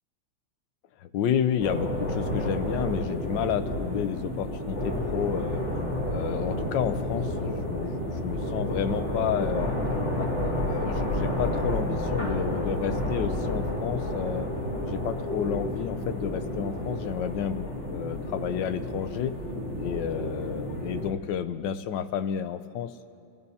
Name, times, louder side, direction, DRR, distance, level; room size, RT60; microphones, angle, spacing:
voice 1, 1.0-5.6 6.1-9.7 10.2-14.5 14.9-19.3 19.8-22.9, left 9 dB, 70° left, 10 dB, 1.2 m, -31 dB
sound 1, 1.6-21.1, left 1 dB, 25° left, 3.1 m, -30 dB
29.5 x 16.0 x 2.8 m, 2.4 s
omnidirectional pair, 2.3 m